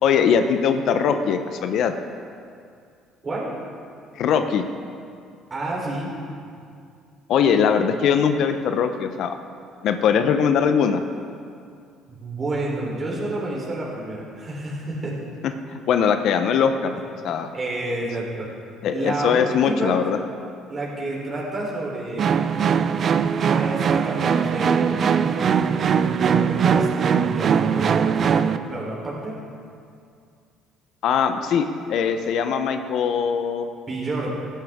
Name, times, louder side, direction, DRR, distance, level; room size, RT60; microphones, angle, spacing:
voice 1, 0.0-1.9 4.2-4.7 7.3-9.4 9.8-11.0 15.4-16.9 17.2-17.5 18.8-20.2 31.0-33.7, left 7 dB, 65° left, 8 dB, 0.7 m, -21 dB
voice 2, 5.5-6.1 12.2-15.2 17.5-18.5 18.9-20.0 20.7-22.4 23.4-25.4 26.1-29.4 33.8-34.3, right 2 dB, 30° right, -4 dB, 3.7 m, -29 dB
sound 1, 22.2-28.6, right 7 dB, 45° right, 0.5 m, -20 dB
16.5 x 10.0 x 3.6 m, 2.3 s
supercardioid pair, 90°, 0 cm